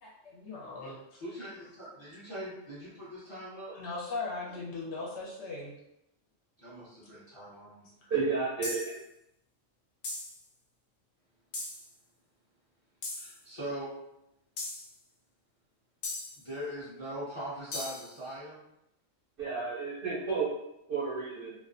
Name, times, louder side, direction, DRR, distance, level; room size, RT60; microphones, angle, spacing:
voice 1, 0.0-1.2 3.7-5.8, left 3 dB, 65° left, -4 dB, 0.9 m, -39 dB
voice 2, 1.2-3.8 4.5-4.6 6.6-7.9 13.2-13.9 16.4-18.6, equal, 35° left, -9 dB, 0.5 m, -41 dB
voice 3, 8.1-8.8 19.4-20.5 20.9-21.5, right 5 dB, 60° right, -7 dB, 0.6 m, -31 dB
sound 1, 8.6-9.0 10.0-10.4 11.5-11.9 13.0-13.4 14.6-14.9 16.0-16.4 17.7-18.1, left 2 dB, 90° left, 0.4 m, -38 dB
2.4 x 2.1 x 2.4 m, 0.83 s
omnidirectional pair, 1.4 m